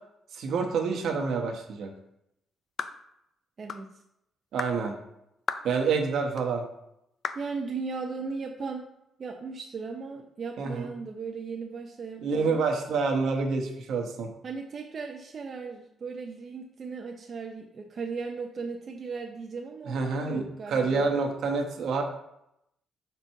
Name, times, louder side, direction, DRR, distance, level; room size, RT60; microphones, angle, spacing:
voice 1, 0.3-1.9 4.5-4.9 5.6-6.6 10.6-10.9 12.2-14.3 19.9-22.0, right 4 dB, 70° right, 3 dB, 1.0 m, -27 dB
sound 1, 2.8-3.0 3.7-3.9 4.6-4.8 5.5-5.7 6.4-6.5 7.2-7.5, left 6 dB, 50° left, 0.4 m, -34 dB
voice 2, 3.6-3.9 7.3-8.8 9.2-12.6 14.4-21.1, right 4 dB, 45° right, 3 dB, 0.6 m, -37 dB
4.5 x 4.0 x 5.6 m, 0.81 s
cardioid pair, 90°, 0 cm